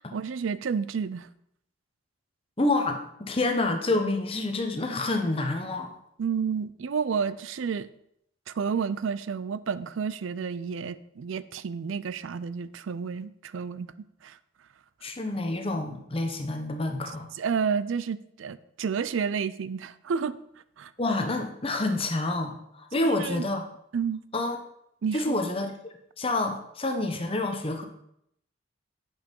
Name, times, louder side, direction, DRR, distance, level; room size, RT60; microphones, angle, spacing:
voice 1, 0.1-1.3 6.2-7.9 8.5-13.9 14.2-14.4 17.4-20.4 20.8-20.9 23.0-23.4 23.9-24.2 25.0-25.4, right 6 dB, 75° right, 16 dB, 0.4 m, -30 dB
voice 2, 2.6-5.9 15.0-17.3 21.0-23.6 24.3-24.6 25.1-27.8, left 2 dB, 30° left, 5 dB, 0.9 m, -28 dB
8.8 x 5.4 x 5.3 m, 0.75 s
head